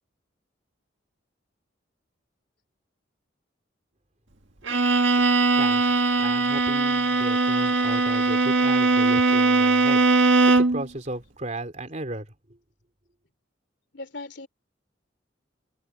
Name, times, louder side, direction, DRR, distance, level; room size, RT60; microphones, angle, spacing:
Bowed string instrument, 4.6-10.9, right 3 dB, 80° right, 1.7 m, -20 dB
voice 1, 5.6-10.1 10.5-12.3, right 2 dB, 40° right, 3.5 m, -35 dB
voice 2, 13.9-14.5, left 2 dB, 60° left, 3.4 m, -38 dB
head